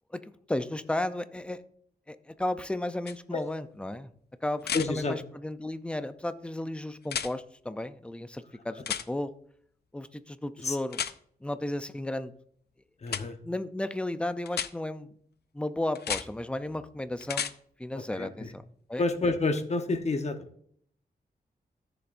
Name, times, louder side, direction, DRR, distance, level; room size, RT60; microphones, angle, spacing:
voice 1, 0.1-1.6 2.1-4.1 4.4-9.3 9.9-11.0 11.4-12.3 13.4-15.1 15.5-17.5 17.8-18.6 18.9-19.0, left 1 dB, 5° left, 11 dB, 0.4 m, -34 dB
sound 1, 3.1-3.2 4.6-4.9 7.0-7.3 8.8-9.1 10.9-11.1 13.1-13.2 14.5-14.7 15.9-16.2 17.2-17.5 19.6-19.7, left 8 dB, 85° left, 0.5 m, -32 dB
voice 2, 4.7-5.2 10.6-10.8 13.0-13.4 18.2-18.5 19.0-20.4, left 3 dB, 40° left, 7 dB, 1.0 m, -28 dB
13.5 x 6.9 x 2.5 m, 0.63 s
wide cardioid pair, 145°, 17 cm